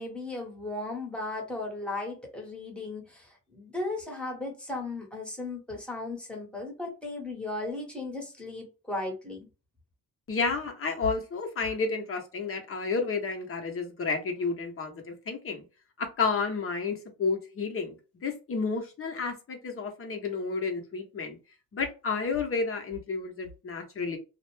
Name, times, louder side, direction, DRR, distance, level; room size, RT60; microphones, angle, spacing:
voice 1, 0.0-9.5, left 2 dB, 5° left, 1.0 m, -36 dB
voice 2, 10.3-15.6 16.0-18.0 18.2-21.4 21.7-24.2, left 4 dB, 40° left, 0.8 m, -31 dB
2.5 x 2.1 x 3.1 m
cardioid pair, 125°, 34 cm